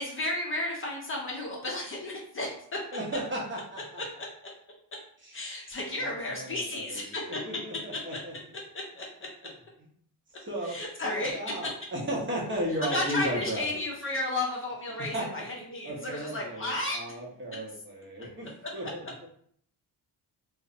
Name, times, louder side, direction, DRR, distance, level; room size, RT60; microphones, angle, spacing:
voice 1, 0.0-2.8 5.3-7.4 7.9-8.0 9.0-9.1 10.6-11.7 12.8-17.0, left 2 dB, 30° left, -2 dB, 0.5 m, -33 dB
voice 2, 2.9-4.0 5.2-5.7 6.0-7.0 7.5-8.3 10.5-10.8 11.0-13.7 15.0-15.4 15.8-19.3, equal, 30° right, -3 dB, 0.6 m, -35 dB
2.5 x 2.0 x 2.4 m, 0.63 s
cardioid pair, 120°, 40 cm